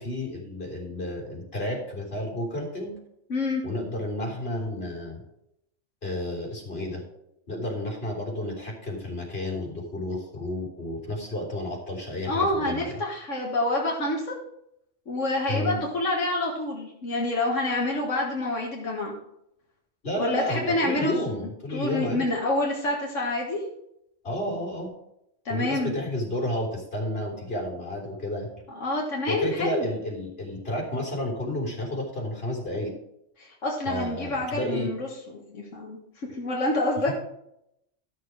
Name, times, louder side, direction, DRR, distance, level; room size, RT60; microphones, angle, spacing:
voice 1, 0.0-2.9 3.6-5.2 6.0-7.0 7.5-12.9 15.5-15.8 20.0-22.2 24.2-24.9 25.5-28.5 29.3-32.9 33.8-34.9, left 1 dB, 55° left, -2 dB, 3.8 m, -31 dB
voice 2, 3.3-3.6 12.3-14.3 15.1-19.1 20.2-21.1 21.7-23.6 25.5-25.9 28.8-29.9 33.4-36.0 36.3-37.1, left 2 dB, 90° left, -2 dB, 1.9 m, -27 dB
13.0 x 6.7 x 4.8 m, 0.80 s
omnidirectional pair, 1.2 m